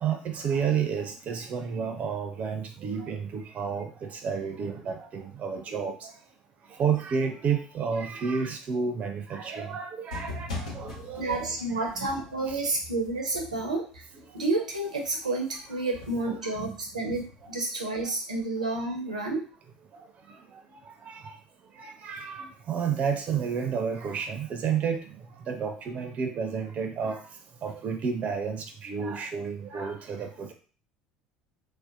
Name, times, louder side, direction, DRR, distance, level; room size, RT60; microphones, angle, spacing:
voice 1, 0.0-6.1 6.8-12.2 12.5-12.6 16.3-16.7 21.1-21.3 21.8-25.0 25.5-27.2 27.6-30.5, right 6 dB, 40° right, 6 dB, 0.4 m, -31 dB
sound 1, 10.1-14.4 14.7-17.6, left 2 dB, 80° left, 0.7 m, -42 dB
voice 2, 11.2-14.0 14.3-19.4, right 2 dB, 90° right, 1 dB, 0.5 m, -30 dB
2.6 x 2.1 x 2.5 m, 0.39 s
figure-of-eight pair, 65°, 4 cm